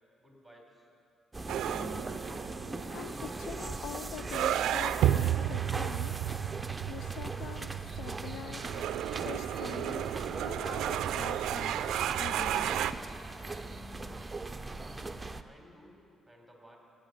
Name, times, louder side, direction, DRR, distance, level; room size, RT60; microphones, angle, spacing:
voice 1, 0.2-0.9 15.4-16.8, equal, 5° left, 0 dB, 3.9 m, -57 dB
sound 1, 1.3-15.4, right 2 dB, 15° right, 0.6 m, -40 dB
sound 2, 1.5-12.9, right 11 dB, 80° right, 0.4 m, -33 dB
voice 2, 2.9-6.2 6.9-8.6 9.2-11.7 12.1-12.8, left 9 dB, 75° left, 18 dB, 0.3 m, -44 dB
15.5 x 8.9 x 9.4 m, 2.6 s
cardioid pair, 90°, 0 cm